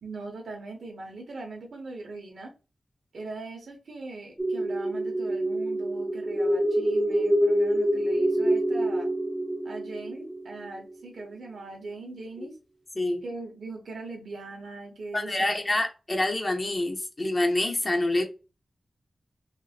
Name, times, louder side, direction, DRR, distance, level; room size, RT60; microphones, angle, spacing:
voice 1, 0.0-2.5 3.1-9.1 9.6-12.6 13.2-15.6, right 3 dB, 70° right, 0.9 m, -40 dB
sound 1, 4.4-10.9, right 1 dB, 10° right, 0.4 m, -26 dB
voice 2, 15.1-18.2, left 1 dB, 25° left, 0.7 m, -26 dB
3.3 x 3.0 x 2.4 m
wide cardioid pair, 160°, 0 cm